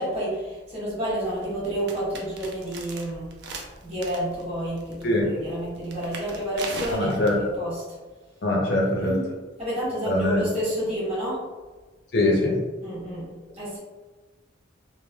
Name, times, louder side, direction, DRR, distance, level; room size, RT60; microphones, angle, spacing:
voice 1, 0.0-3.4 3.8-7.8 9.0-11.5 12.8-13.8, equal, 30° right, -8 dB, 1.0 m, -30 dB
sound 1, 1.0-7.6, right 3 dB, 55° right, 0.4 m, -40 dB
voice 2, 6.9-7.3 8.4-9.1 10.1-10.4 12.1-12.6, left 1 dB, 50° left, -2 dB, 0.5 m, -22 dB
3.1 x 2.1 x 2.2 m, 1.3 s
head